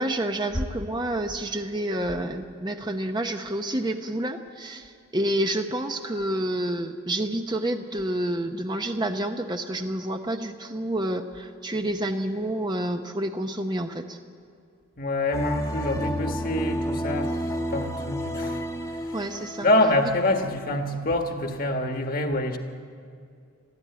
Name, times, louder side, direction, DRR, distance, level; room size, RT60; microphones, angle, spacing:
voice 1, 0.0-14.2 19.1-19.7, right 1 dB, 20° right, 5 dB, 0.8 m, -29 dB
voice 2, 15.0-18.6 19.6-22.6, left 1 dB, 40° left, 5 dB, 1.5 m, -26 dB
sound 1, 15.3-20.7, equal, 15° left, 1.1 m, -31 dB
22.0 x 14.5 x 9.4 m, 2.3 s
head